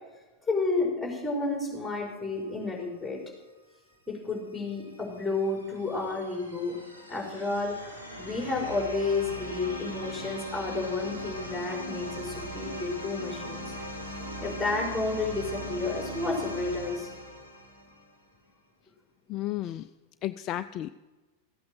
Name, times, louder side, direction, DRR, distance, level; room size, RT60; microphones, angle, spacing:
voice 1, 0.5-3.2 4.1-6.7 7.1-13.7 14.4-17.1, left 3 dB, ahead, -1 dB, 4.9 m, -31 dB
sound 1, 4.3-18.2, equal, 90° right, 2.3 m, -40 dB
voice 2, 19.3-19.9 20.2-20.9, left 13 dB, 35° left, 12 dB, 0.4 m, -33 dB
15.0 x 8.6 x 7.8 m, 1.2 s
figure-of-eight pair, 90°, 0 cm